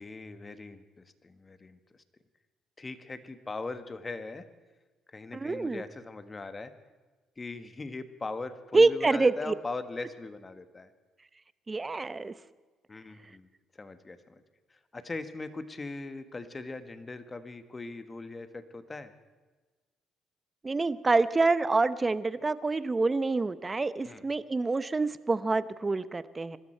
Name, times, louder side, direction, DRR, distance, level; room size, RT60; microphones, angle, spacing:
voice 1, 0.0-1.8 2.8-4.4 5.1-6.7 7.4-10.9 12.9-13.5 13.7-14.2 14.7-19.1 24.0-24.2, left 3 dB, 25° left, 10 dB, 1.5 m, -40 dB
voice 2, 5.3-5.8 8.7-9.5 11.7-12.3 20.6-26.6, right 3 dB, 25° right, 15 dB, 0.8 m, -26 dB
24.5 x 13.0 x 4.5 m, 1.3 s
cardioid pair, 85°, 0 cm